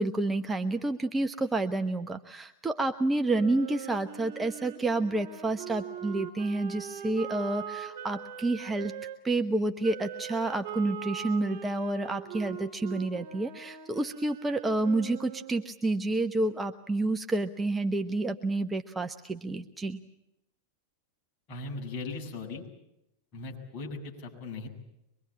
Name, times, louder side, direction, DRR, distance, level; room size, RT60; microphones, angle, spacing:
voice 1, 0.0-8.9 9.2-20.0, right 2 dB, 10° right, 7 dB, 1.0 m, -29 dB
Wind instrument woodwind instrument, 3.2-9.2 9.8-15.7, right 9 dB, 55° right, 3.4 m, -41 dB
voice 2, 21.5-22.6 23.3-24.7, left 3 dB, 35° left, 0 dB, 7.6 m, -38 dB
24.0 x 23.0 x 8.8 m, 0.85 s
figure-of-eight pair, 90°, 0 cm